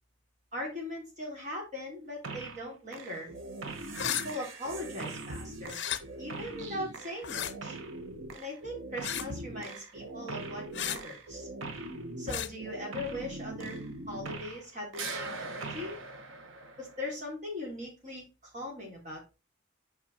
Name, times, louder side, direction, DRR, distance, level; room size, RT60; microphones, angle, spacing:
voice 1, 0.5-3.3 4.1-5.8 6.2-7.8 8.3-11.5 12.2-13.8 14.1-16.0 16.8-19.3, left 1 dB, 35° right, -2 dB, 3.7 m, -40 dB
sound 1, 2.2-2.7 2.9-14.7 14.9-17.1, right 2 dB, 85° right, 1.1 m, -41 dB
sound 2, 3.9-4.3 5.7-6.0 7.2-7.5 9.0-9.3 10.7-11.0 12.3-12.5, left 10 dB, 60° left, 0.7 m, -33 dB
6.1 x 5.4 x 4.3 m, 0.28 s
head